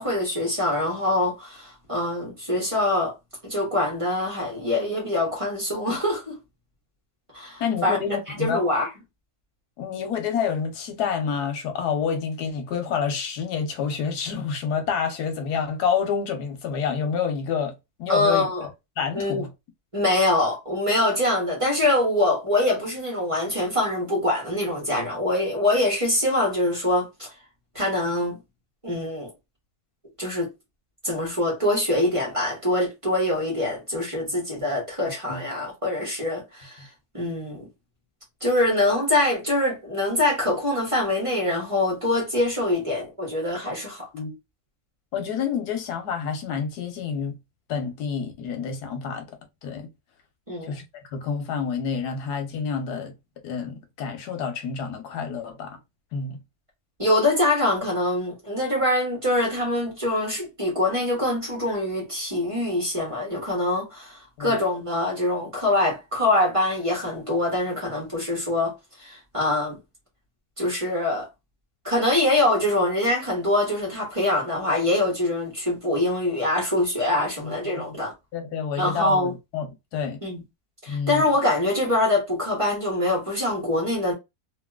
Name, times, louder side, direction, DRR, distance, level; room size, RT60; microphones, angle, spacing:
voice 1, 0.0-3.1 3.4-6.4 7.3-8.0 8.3-8.9 18.1-18.6 19.1-19.4 19.9-27.3 27.7-28.4 28.8-29.3 30.2-30.5 31.0-36.9 37.1-37.7 38.4-44.1 50.5-50.7 57.0-69.8 70.6-71.3 71.8-78.1 78.8-79.3 80.2-80.4 80.8-84.1, left 1 dB, 20° right, 1.2 m, -24 dB
voice 2, 7.6-8.6 9.8-17.7 18.0-18.7 19.0-19.5 35.3-35.4 44.1-44.4 45.1-47.4 47.7-49.3 49.6-49.9 50.7-50.8 51.1-53.1 53.4-55.8 56.1-56.4 64.4-64.5 77.4-77.9 78.3-80.2 80.9-81.2, left 6 dB, 90° left, 1.3 m, -28 dB
3.0 x 2.8 x 2.2 m
omnidirectional pair, 1.6 m